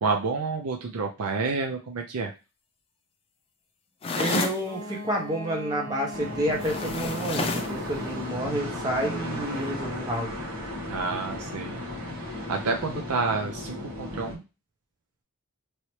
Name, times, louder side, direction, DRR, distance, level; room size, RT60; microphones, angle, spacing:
voice 1, 0.0-2.3 10.9-11.8 12.5-14.4, right 4 dB, 80° right, 3 dB, 0.5 m, -29 dB
sound 1, 4.0-4.6 6.6-7.8, left 3 dB, 25° left, 0.4 m, -29 dB
voice 2, 4.1-10.4, right 1 dB, 15° right, -2 dB, 1.0 m, -29 dB
Wind instrument woodwind instrument, 4.6-8.4, equal, 35° right, 1.6 m, -40 dB
sound 2, 6.1-14.4, left 1 dB, 65° right, 1.3 m, -35 dB
3.1 x 2.8 x 3.1 m, 0.29 s
head